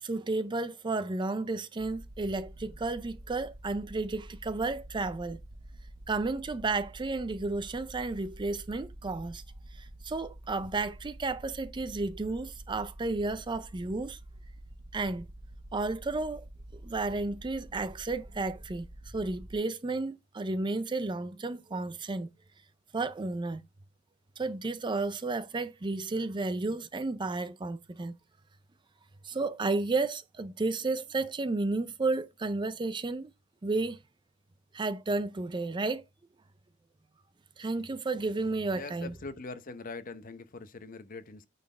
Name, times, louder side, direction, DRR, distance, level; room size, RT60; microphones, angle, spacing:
voice 1, 0.0-5.4 6.1-9.4 9.7-14.2 14.9-15.2 15.7-16.5 16.7-22.3 22.9-23.6 24.4-28.1 29.2-33.3 33.6-34.0 34.7-36.0 37.6-39.1, right 3 dB, 25° right, 0.4 m, -32 dB
sound 1, 1.8-19.6, right 1 dB, 60° right, 1.1 m, -48 dB
voice 2, 38.7-41.5, left 3 dB, 45° left, 0.8 m, -42 dB
9.3 x 4.1 x 3.2 m
head